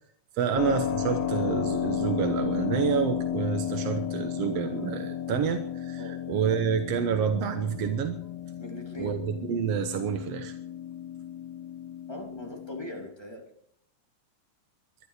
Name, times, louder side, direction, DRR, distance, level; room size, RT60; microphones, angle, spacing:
voice 1, 0.3-8.2 9.0-10.6, right 7 dB, 65° right, 7 dB, 1.7 m, -28 dB
Keyboard (musical), 0.5-13.1, left 10 dB, 65° left, 1.9 m, -33 dB
voice 2, 8.6-9.2 12.1-13.4, equal, 10° left, 0 dB, 2.5 m, -41 dB
21.5 x 12.0 x 4.9 m, 0.68 s
omnidirectional pair, 3.9 m